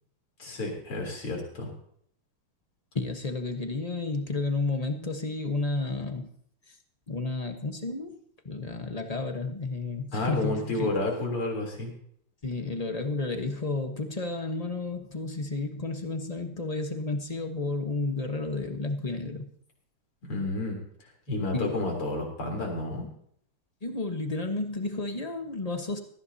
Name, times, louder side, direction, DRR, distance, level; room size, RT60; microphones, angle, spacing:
voice 1, 0.4-1.7 10.1-11.9 20.2-20.8 21.3-23.1, left 2 dB, 85° left, 1 dB, 4.5 m, -30 dB
voice 2, 2.9-6.3 7.1-8.1 8.4-11.0 12.4-19.5 21.5-21.8 23.8-26.0, left 3 dB, 25° left, 5 dB, 0.9 m, -31 dB
18.5 x 14.5 x 2.8 m, 0.66 s
omnidirectional pair, 2.3 m